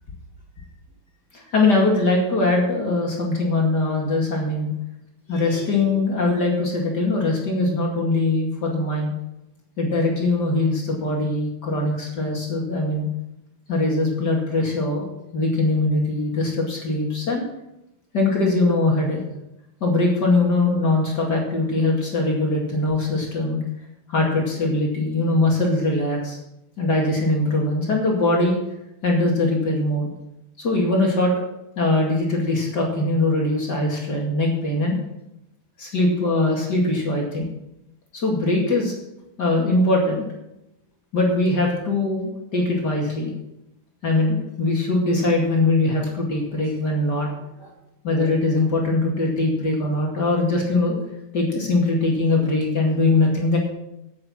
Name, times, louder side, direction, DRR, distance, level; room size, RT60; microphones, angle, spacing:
voice 1, 1.3-4.7 5.3-9.1 9.8-13.0 13.7-15.1 15.3-17.4 18.1-19.2 19.8-23.6 24.1-26.4 26.8-28.6 29.0-30.1 30.6-31.3 31.8-35.0 35.8-37.5 38.1-38.9 39.4-40.3 41.1-43.3 44.0-47.3 47.6-47.7 48.0-51.0 51.3-53.6, left 2 dB, 35° left, -1 dB, 2.2 m, -21 dB
9.5 x 8.3 x 7.4 m, 0.86 s
omnidirectional pair, 4.1 m